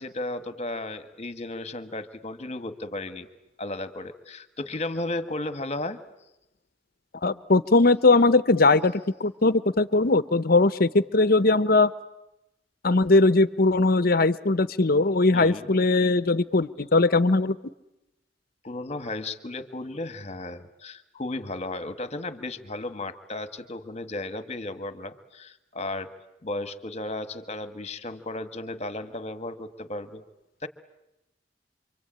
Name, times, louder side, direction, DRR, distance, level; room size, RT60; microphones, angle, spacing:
voice 1, 0.0-3.3 3.6-6.0 15.3-15.7 18.6-26.1 26.4-30.2 30.6-30.7, left 2 dB, 40° left, 11 dB, 1.5 m, -34 dB
voice 2, 7.2-11.9 12.8-17.6, left 3 dB, 55° left, 15 dB, 0.9 m, -20 dB
27.0 x 25.0 x 8.9 m, 0.90 s
head